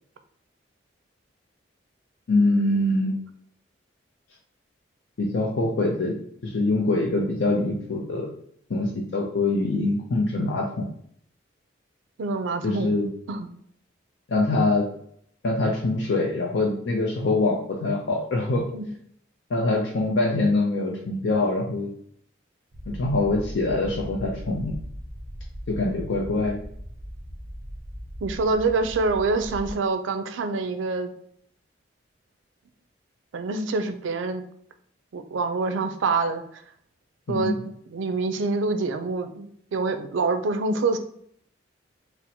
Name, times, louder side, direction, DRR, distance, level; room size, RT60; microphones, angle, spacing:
voice 1, 2.3-3.1 5.2-6.2 6.4-8.3 8.7-10.9 12.6-13.1 14.3-14.9 15.4-18.7 19.5-21.9 22.9-24.8 25.7-26.6 37.3-37.6, left 2 dB, 80° left, -1 dB, 0.5 m, -24 dB
voice 2, 12.2-12.9 13.3-13.5 18.7-18.9 28.2-31.1 33.3-34.4 35.1-36.4 37.3-41.0, right 3 dB, 85° right, 7 dB, 0.4 m, -26 dB
sound 1, 22.7-29.7, equal, 40° right, 0.7 m, -38 dB
4.1 x 2.0 x 2.7 m, 0.66 s
head